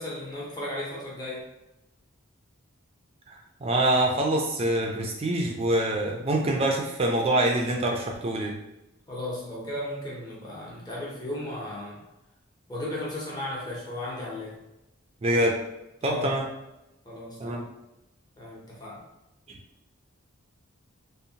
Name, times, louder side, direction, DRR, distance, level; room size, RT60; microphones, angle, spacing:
voice 1, 0.0-1.5 9.1-12.0 12.7-14.6 16.0-16.4 17.0-17.6 18.4-19.0, left 1 dB, 20° left, -5 dB, 0.6 m, -35 dB
voice 2, 3.3-8.5 15.2-15.6 16.0-16.5 17.4-17.7 19.5-19.6, right 1 dB, 30° right, 0 dB, 0.4 m, -25 dB
2.7 x 2.1 x 2.7 m, 0.93 s
head